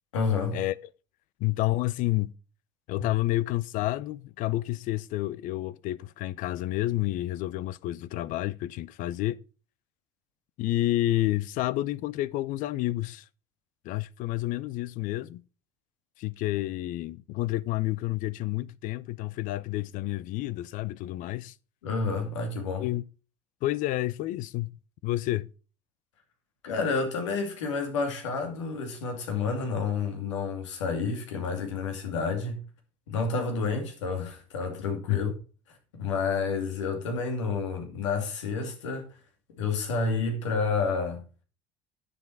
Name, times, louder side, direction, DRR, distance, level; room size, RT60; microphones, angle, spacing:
voice 1, 0.1-0.6 21.8-22.9 26.6-32.6 33.1-35.3 35.7-39.1 39.6-41.2, left 4 dB, 90° left, 2.5 m, -29 dB
voice 2, 1.4-2.3 2.9-9.4 10.6-13.2 13.8-15.4 16.2-21.5 22.8-23.0 23.6-24.7 25.0-25.5 35.1-35.2, left 16 dB, 60° left, 0.6 m, -29 dB
9.8 x 7.4 x 4.6 m
hypercardioid pair, 70°, 15 cm